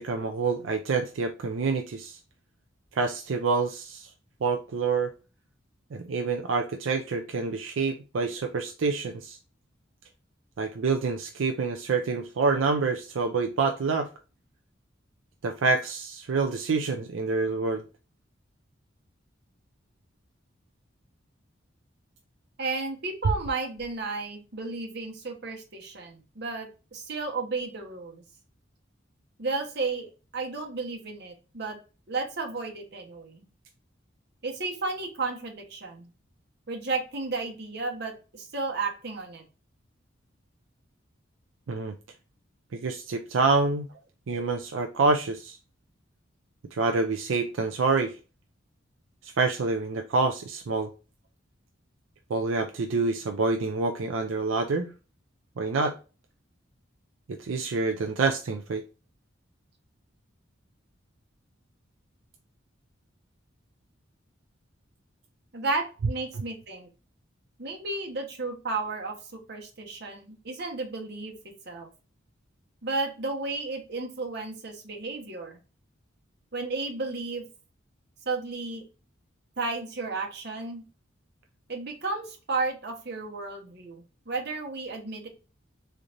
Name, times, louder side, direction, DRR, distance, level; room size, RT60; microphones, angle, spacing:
voice 1, 0.0-2.2 3.0-4.1 4.4-5.1 5.9-9.4 10.6-14.1 15.4-17.8 41.7-41.9 42.7-43.9 44.3-45.6 46.7-48.2 49.2-50.9 52.3-54.9 55.6-55.9 57.3-58.8, right 4 dB, 85° right, 5 dB, 0.5 m, -27 dB
voice 2, 22.6-28.2 29.4-31.8 32.1-33.4 34.4-36.1 36.7-39.4 65.5-66.9 67.6-71.3 71.7-71.9 72.8-75.6 76.5-77.4 78.2-78.8 79.6-80.8 81.7-85.3, right 3 dB, 55° right, 2 dB, 1.2 m, -33 dB
3.8 x 3.2 x 2.6 m, 0.32 s
head